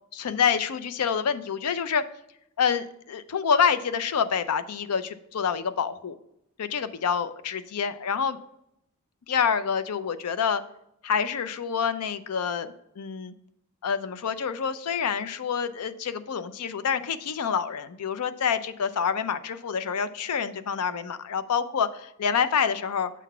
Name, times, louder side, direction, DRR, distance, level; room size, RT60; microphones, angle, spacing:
voice 1, 0.1-2.0 2.6-6.2 6.6-8.4 9.3-10.6 11.0-13.3 13.8-23.1, left 6 dB, 90° left, 13 dB, 0.5 m, -27 dB
7.2 x 4.0 x 5.5 m, 0.78 s
head